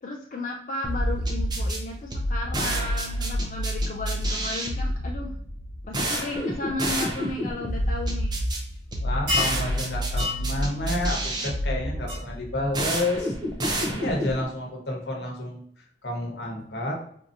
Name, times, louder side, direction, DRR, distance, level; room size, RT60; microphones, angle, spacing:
voice 1, 0.0-5.3 5.9-8.4, left 2 dB, 45° left, 0 dB, 0.3 m, -34 dB
sound 1, 0.8-14.4, equal, 25° right, 0.5 m, -28 dB
voice 2, 9.0-13.3 13.9-17.0, left 1 dB, 70° left, 0 dB, 1.0 m, -30 dB
sound 2, 9.3-9.6 10.2-10.4 12.1-12.2, left 3 dB, 75° right, 1.5 m, -26 dB
4.5 x 2.7 x 2.5 m, 0.65 s
head